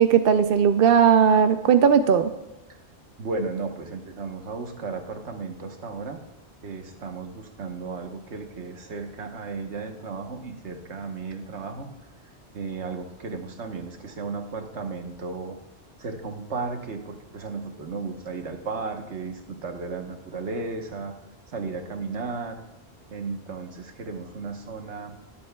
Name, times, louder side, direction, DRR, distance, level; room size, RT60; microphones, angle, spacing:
voice 1, 0.0-2.3, right 7 dB, 60° right, 9 dB, 0.7 m, -18 dB
voice 2, 3.2-6.2 6.6-11.9 12.5-15.6 16.0-21.1 21.5-22.6 23.1-25.2, right 4 dB, 80° right, 5 dB, 1.4 m, -34 dB
21.5 x 7.7 x 2.3 m, 0.98 s
omnidirectional pair, 1.2 m